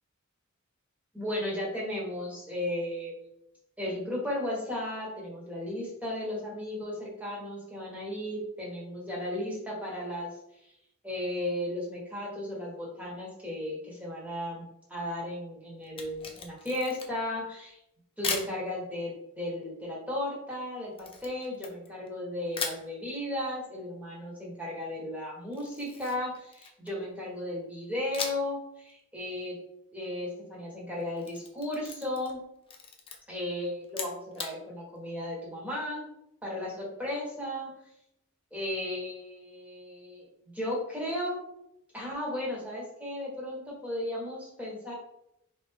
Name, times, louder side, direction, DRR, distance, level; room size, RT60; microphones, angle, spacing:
voice 1, 1.1-3.2 3.8-10.3 11.0-17.8 18.2-29.6 29.9-32.4 33.3-36.0 36.4-37.7 38.5-40.3 40.5-41.4 41.9-44.9, left 1 dB, 5° right, -4 dB, 1.3 m, -35 dB
Camera, 15.8-17.3 18.2-18.5 21.0-22.1 22.5-22.9 25.5-27.0 28.1-28.6 28.9-29.0 31.0-32.4 32.7-33.2 33.8-34.5, left 5 dB, 25° left, 0.5 m, -37 dB
4.1 x 3.4 x 3.5 m, 0.81 s
head